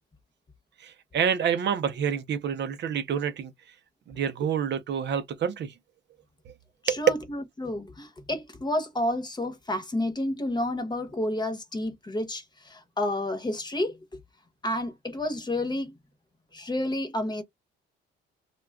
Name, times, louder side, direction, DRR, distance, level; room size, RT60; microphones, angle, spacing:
voice 1, 0.8-3.5 4.1-5.7 6.9-7.0, right 8 dB, 60° right, 0.6 m, -28 dB
voice 2, 6.8-13.9 14.6-16.0 16.5-17.4, left 1 dB, 20° left, 1.0 m, -30 dB
2.3 x 2.2 x 3.4 m
cardioid pair, 90°, 20 cm